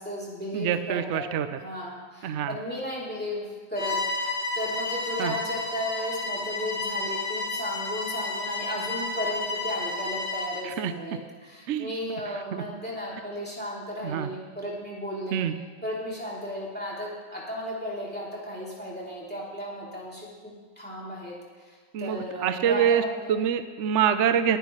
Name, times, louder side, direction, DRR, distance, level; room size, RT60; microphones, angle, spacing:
voice 1, 0.0-1.3 1.6-15.5 15.8-21.3 21.6-23.4, left 1 dB, 5° left, -6 dB, 3.1 m, -35 dB
voice 2, 0.5-1.5 2.2-2.6 5.2-5.3 10.6-10.9 11.7-11.9 12.3-12.6 14.0-14.3 15.3-15.5 21.9-23.0 23.3-24.6, right 9 dB, 60° right, 10 dB, 0.7 m, -25 dB
Bowed string instrument, 3.8-10.7, left 3 dB, 55° left, 1.5 m, -31 dB
21.0 x 9.9 x 3.2 m, 1.5 s
omnidirectional pair, 1.8 m